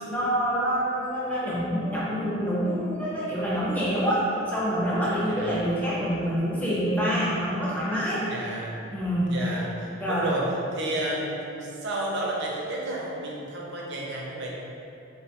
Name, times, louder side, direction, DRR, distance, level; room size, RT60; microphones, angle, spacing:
voice 1, 0.0-8.3 8.9-9.3 10.0-10.3, equal, 5° left, -8 dB, 0.4 m, -26 dB
voice 2, 5.2-5.6 8.3-8.8 9.3-14.5, right 1 dB, 50° right, -3 dB, 0.4 m, -31 dB
3.2 x 2.2 x 2.8 m, 2.8 s
head